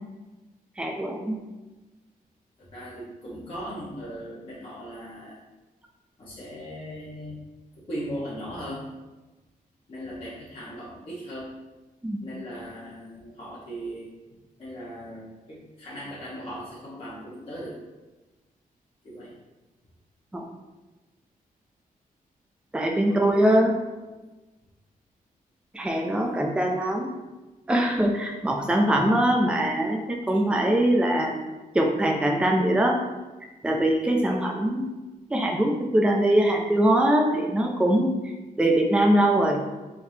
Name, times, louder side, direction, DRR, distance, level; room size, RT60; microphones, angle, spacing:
voice 1, 0.8-1.4 12.0-12.2 20.3-20.4 22.7-23.8 25.7-27.1 27.7-31.3 31.7-33.0 33.6-34.8 35.3-39.6, right 1 dB, 5° right, 1 dB, 0.4 m, -22 dB
voice 2, 2.6-5.4 6.2-7.4 7.7-9.0 9.9-11.5 12.2-14.1 14.6-17.8 19.0-19.3 23.1-23.6 26.2-26.4, equal, 40° left, -9 dB, 1.2 m, -38 dB
4.5 x 3.6 x 2.8 m, 1.1 s
wide cardioid pair, 130°, 15 cm